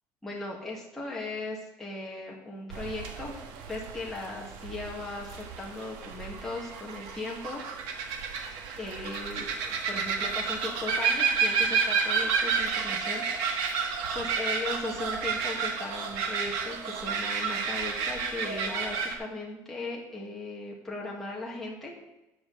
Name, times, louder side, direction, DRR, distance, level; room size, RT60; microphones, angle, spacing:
voice 1, 0.2-3.4 3.7-7.6 8.8-21.9, left 2 dB, 5° left, -4 dB, 1.7 m, -38 dB
sound 1, 2.7-19.2, right 5 dB, 85° right, 1.5 m, -31 dB
13.0 x 7.5 x 3.9 m, 0.98 s
cardioid pair, 170°, 7 cm